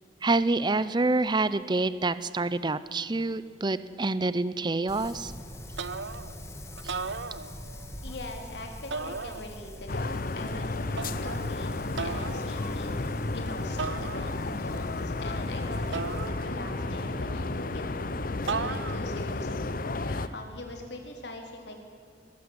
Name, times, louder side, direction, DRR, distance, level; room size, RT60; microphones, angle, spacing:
voice 1, 0.2-5.3, right 2 dB, 25° right, 15 dB, 0.6 m, -27 dB
Wind, 4.9-16.3, left 1 dB, 15° left, 1.9 m, -44 dB
sound 1, 5.8-6.4 6.8-7.9 8.9-9.8 11.0-11.5 12.0-12.5 13.8-14.6 15.9-16.9 18.5-19.2, right 5 dB, 80° right, 0.8 m, -36 dB
voice 2, 8.0-10.9 11.2-12.9 13.3-17.8 18.5-19.8 20.0-21.7, left 2 dB, 65° left, 3 dB, 3.9 m, -42 dB
sound 2, 9.9-20.3, left 2 dB, 50° left, 0.8 m, -32 dB
21.0 x 15.0 x 9.7 m, 2.3 s
head